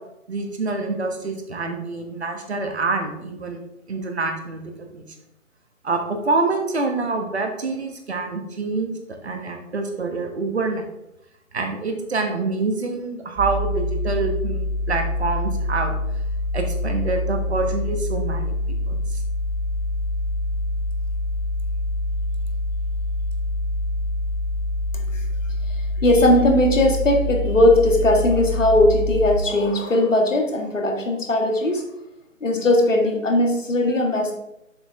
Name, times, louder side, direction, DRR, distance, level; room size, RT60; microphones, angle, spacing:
voice 1, 0.3-3.6 3.9-5.0 5.8-10.8 11.5-15.9 16.5-19.2, right 3 dB, 50° right, 4 dB, 1.4 m, -26 dB
sound 1, 13.4-29.4, left 1 dB, 5° right, 2.0 m, -25 dB
voice 2, 26.0-31.8 32.4-34.3, left 1 dB, 65° left, 2 dB, 1.7 m, -18 dB
7.1 x 6.1 x 3.5 m, 0.86 s
figure-of-eight pair, 145°, 41 cm